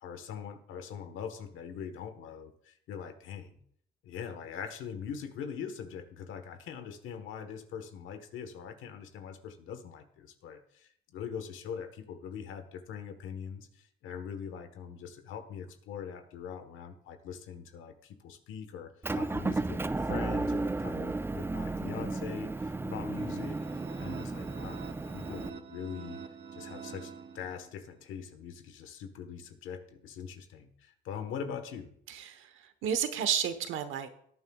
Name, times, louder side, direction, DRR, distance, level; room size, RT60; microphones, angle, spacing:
voice 1, 0.0-3.6 4.0-26.2 26.5-31.9, left 7 dB, 85° left, 9 dB, 1.3 m, -42 dB
Motor vehicle (road) / Engine, 19.0-25.5, right 2 dB, 10° right, 0.4 m, -34 dB
sound 1, 23.1-27.9, right 6 dB, 55° right, 0.9 m, -45 dB
voice 2, 32.1-34.1, right 8 dB, 85° right, 9 dB, 1.1 m, -32 dB
18.0 x 9.8 x 2.4 m, 0.68 s
cardioid pair, 90°, 20 cm